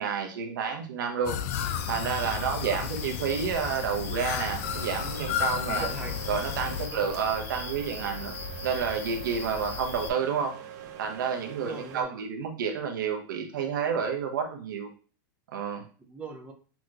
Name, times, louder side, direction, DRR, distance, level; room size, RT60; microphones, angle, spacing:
voice 1, 0.0-1.4 1.9-5.9 6.3-8.3 8.6-10.5 11.0-14.9 15.5-15.8, right 6 dB, 80° right, 3 dB, 1.1 m, -30 dB
sound 1, 1.3-6.9, left 10 dB, 50° left, 0.4 m, -33 dB
sound 2, 1.5-10.1, left 3 dB, 20° left, 0.7 m, -39 dB
sound 3, 4.6-12.0, right 9 dB, 55° right, 0.9 m, -44 dB
voice 2, 5.7-6.2 6.8-7.1 11.5-12.1 16.0-16.5, right 4 dB, 10° right, 1 dB, 0.8 m, -40 dB
6.0 x 3.0 x 2.6 m, 0.39 s
supercardioid pair, 140°, 10 cm